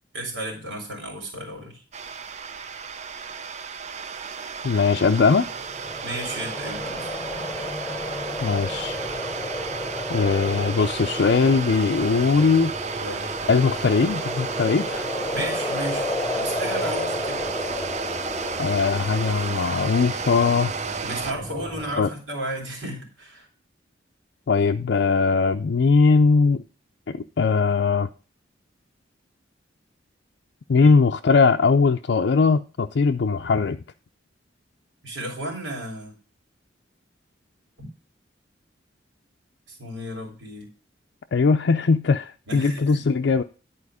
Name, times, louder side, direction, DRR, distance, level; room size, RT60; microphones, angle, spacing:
voice 1, 0.1-1.8 6.0-7.1 13.0-13.3 15.3-16.1 16.4-17.7 21.0-23.5 30.8-31.0 35.0-36.1 37.8-37.9 39.7-40.7 42.5-43.1, right 1 dB, 85° right, 3.5 m, -33 dB
sound 1, 1.9-21.3, right 5 dB, 40° right, 0.5 m, -33 dB
voice 2, 4.6-5.5 8.4-9.0 10.1-12.7 13.5-15.1 18.6-20.7 22.0-22.1 24.5-26.6 27.1-28.1 30.7-33.8 41.3-43.4, left 4 dB, 65° left, 0.4 m, -20 dB
sound 2, 5.2-22.0, left 1 dB, 10° left, 1.0 m, -33 dB
11.0 x 4.4 x 4.9 m
head